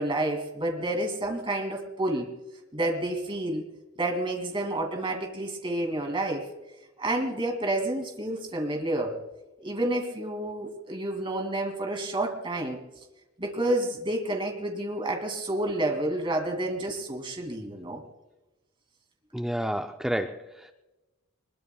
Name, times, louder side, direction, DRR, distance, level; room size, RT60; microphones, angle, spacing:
voice 1, 0.0-2.3 2.7-3.6 4.0-6.5 7.0-9.2 9.6-12.8 13.4-18.0, right 1 dB, 25° right, 2 dB, 2.4 m, -29 dB
voice 2, 19.3-20.7, equal, ahead, 5 dB, 0.4 m, -30 dB
23.0 x 21.0 x 2.3 m, 1.1 s
head